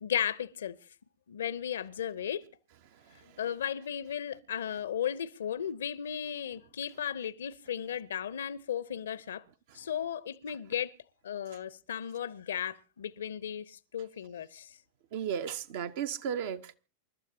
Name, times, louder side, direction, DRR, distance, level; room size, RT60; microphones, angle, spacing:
voice 1, 0.0-0.7 1.3-2.4 3.4-9.4 9.7-10.9 11.2-14.7, left 9 dB, 65° left, 0.7 m, -35 dB
voice 2, 3.1-3.4 9.7-9.8 15.1-16.7, right 8 dB, 50° right, 0.8 m, -35 dB
28.0 x 12.5 x 2.8 m
figure-of-eight pair, 90°, 0 cm